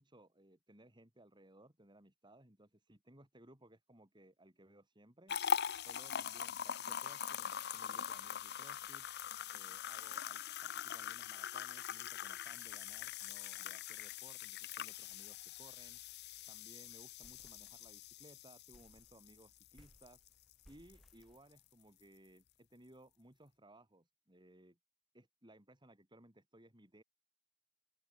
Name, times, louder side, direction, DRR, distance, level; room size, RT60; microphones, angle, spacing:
voice 1, 0.0-5.4 5.8-9.1 9.5-16.0 16.5-20.2 20.7-24.8 25.1-27.0, right 1 dB, 20° right, 3.8 m, -62 dB
sound 1, 5.3-20.5 20.9-21.1 21.6-21.7, left 8 dB, 50° left, 0.8 m, -42 dB
sound 2, 15.4-15.5 15.7-15.8 16.1-16.5 16.9-18.3 18.7-22.0, equal, ahead, 2.6 m, -67 dB
open air
head